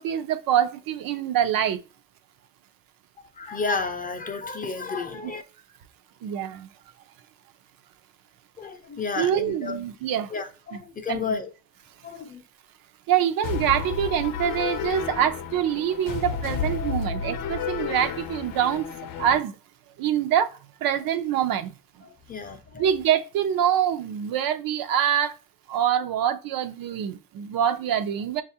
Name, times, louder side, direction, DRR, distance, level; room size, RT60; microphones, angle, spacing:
voice 1, 0.0-1.8 5.2-5.3 6.2-6.7 9.2-10.3 11.1-11.3 13.1-18.9 19.2-19.6 20.0-21.7 22.8-25.4 25.7-28.4, right 10 dB, 90° right, 0.5 m, -25 dB
voice 2, 3.2-5.4 8.6-9.8 10.3-11.5 12.0-12.4 22.0-22.9, left 4 dB, 25° left, 0.5 m, -32 dB
sound 1, 13.4-19.4, left 6 dB, 80° left, 0.6 m, -31 dB
6.2 x 2.4 x 2.7 m
cardioid pair, 145°, 34 cm